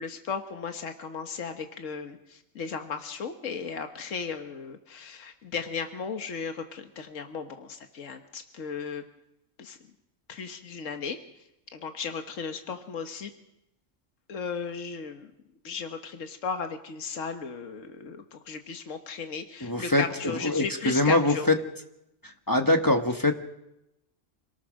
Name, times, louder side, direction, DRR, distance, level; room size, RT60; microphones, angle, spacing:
voice 1, 0.0-9.0 9.6-9.8 10.3-11.2 11.7-13.3 14.3-15.3 15.6-21.5, left 5 dB, 75° left, 6 dB, 1.6 m, -35 dB
voice 2, 19.6-21.6 22.2-23.3, left 2 dB, 15° left, 5 dB, 1.3 m, -24 dB
26.5 x 18.5 x 6.4 m, 0.87 s
omnidirectional pair, 1.3 m